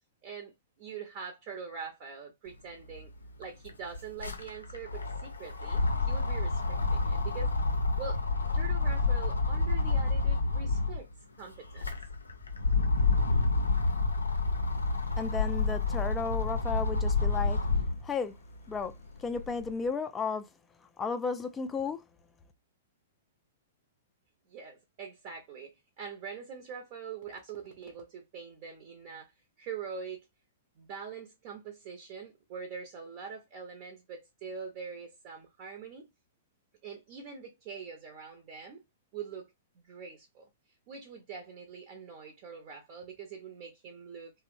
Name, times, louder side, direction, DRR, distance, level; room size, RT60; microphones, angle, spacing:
voice 1, 0.2-0.5 0.8-3.1 3.4-7.5 8.0-8.2 8.5-11.1 11.4-11.9 24.5-29.3 29.6-30.3 30.8-36.1 36.8-38.8 39.1-40.5 40.9-44.3, right 6 dB, 40° right, 0.6 m, -43 dB
sound 1, 2.9-3.0 3.2-11.0 11.5-18.1 18.6-19.7, left 3 dB, 75° left, 0.5 m, -29 dB
voice 2, 15.2-17.6 18.0-18.3 18.7-18.9 19.2-20.4 21.0-22.0, left 5 dB, 15° left, 0.3 m, -33 dB
2.9 x 2.0 x 2.4 m
figure-of-eight pair, 105°, 0 cm